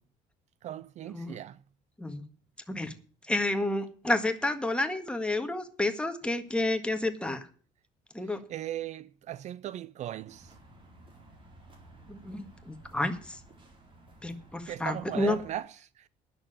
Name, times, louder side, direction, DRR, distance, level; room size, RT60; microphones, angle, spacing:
voice 1, 0.6-1.6 8.2-10.5 14.7-16.1, right 12 dB, 55° right, 0.4 m, -38 dB
voice 2, 3.3-7.5 8.1-8.4 12.1-13.4 14.2-15.4, left 2 dB, 5° left, 1.7 m, -30 dB
sound 1, 10.3-15.6, right 2 dB, 35° right, 4.1 m, -55 dB
10.0 x 7.0 x 8.9 m
cardioid pair, 105°, 14 cm